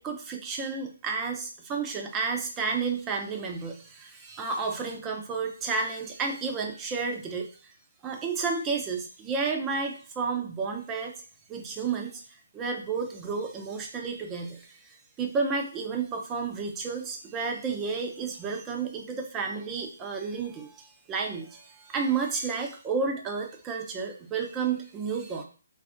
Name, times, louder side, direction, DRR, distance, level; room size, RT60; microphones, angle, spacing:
voice 1, 0.0-7.7 8.0-11.1 11.5-12.2 12.5-25.4, right 5 dB, 15° right, 2 dB, 0.7 m, -31 dB
4.1 x 2.4 x 3.6 m, 0.39 s
figure-of-eight pair, 145°, 0 cm